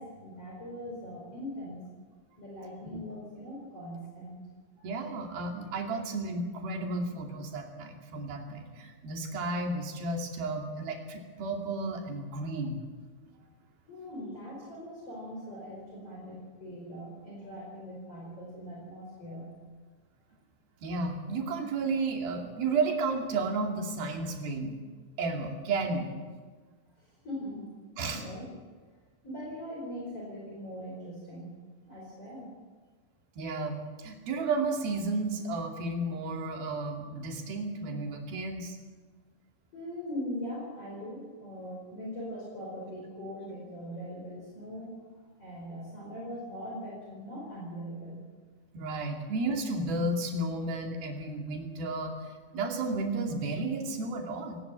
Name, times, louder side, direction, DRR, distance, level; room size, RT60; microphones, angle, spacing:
voice 1, 0.0-1.8 2.4-4.4 13.3-13.4 13.9-19.5 27.2-27.7 28.1-28.5 29.2-31.5 31.8-32.5 39.7-45.0 45.4-48.2, equal, 40° left, -3 dB, 5.6 m, -41 dB
voice 2, 4.8-12.8 20.8-24.8 25.2-26.1 28.0-28.2 33.4-38.8 48.7-52.1 52.5-54.6, right 3 dB, 80° right, 2 dB, 4.4 m, -32 dB
20.0 x 19.0 x 7.5 m, 1.5 s
omnidirectional pair, 4.2 m